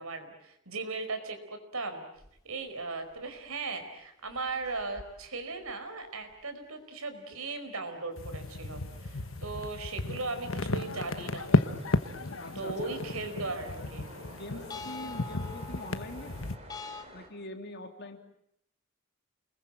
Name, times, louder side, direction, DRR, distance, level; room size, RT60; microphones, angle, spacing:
voice 1, 0.0-2.0 2.4-11.5 12.5-14.1, right 3 dB, 80° right, 7 dB, 4.9 m, -37 dB
sound 1, 2.2-2.4 2.7-2.8 3.1-3.6 4.3-6.4 6.7-6.9 7.2-7.3 9.5-9.6 10.2-10.3 10.7-10.9 14.7-17.0, left 4 dB, 20° left, 2.5 m, -46 dB
sound 2, 8.2-16.5, left 2 dB, 65° left, 1.3 m, -33 dB
sound 3, 8.3-17.3, right 2 dB, 30° right, 4.2 m, -52 dB
voice 2, 12.4-13.0 14.4-16.5 17.1-18.2, left 1 dB, 50° left, 5 dB, 3.4 m, -43 dB
29.5 x 21.5 x 8.9 m, 0.73 s
head